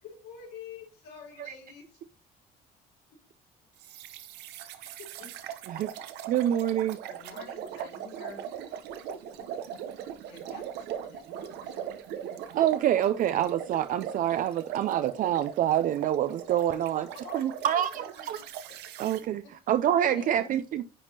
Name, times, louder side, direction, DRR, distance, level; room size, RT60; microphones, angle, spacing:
voice 1, 0.0-2.0 5.2-5.3 9.1-9.6 10.3-11.9 17.1-18.4 19.1-19.5, left 5 dB, 90° left, 3.2 m, -48 dB
sound 1, 3.8-19.2, right 9 dB, 90° right, 0.7 m, -40 dB
voice 2, 6.3-7.0 12.5-17.1 17.3-18.4 19.0-20.8, right 11 dB, 55° right, 0.4 m, -26 dB
voice 3, 7.1-8.4 20.0-20.5, left 4 dB, 65° left, 3.1 m, -46 dB
9.8 x 3.6 x 2.7 m
cardioid pair, 110°, 17 cm